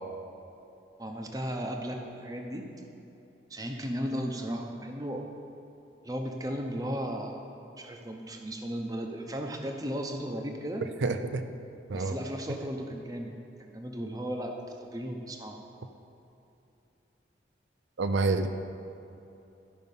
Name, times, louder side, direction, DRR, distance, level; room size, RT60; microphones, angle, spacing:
voice 1, 1.0-2.7 3.5-5.3 6.0-7.5 7.8-10.9 11.9-13.3 13.6-15.6, equal, 20° right, 3 dB, 0.7 m, -35 dB
voice 2, 11.0-11.4 11.9-12.2 18.0-18.5, right 3 dB, 85° right, 8 dB, 0.5 m, -27 dB
12.0 x 5.4 x 5.4 m, 2.9 s
head